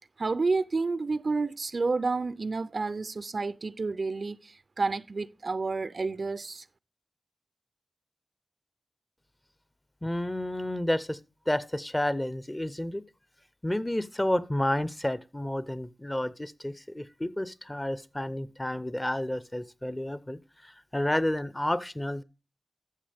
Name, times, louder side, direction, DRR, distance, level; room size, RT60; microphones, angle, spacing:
voice 1, 0.2-6.6, right 3 dB, 55° right, 0.4 m, -30 dB
voice 2, 10.0-11.2 11.5-13.0 13.6-22.2, left 1 dB, 15° left, 0.6 m, -30 dB
13.0 x 7.0 x 3.4 m
wide cardioid pair, 75°, 0 cm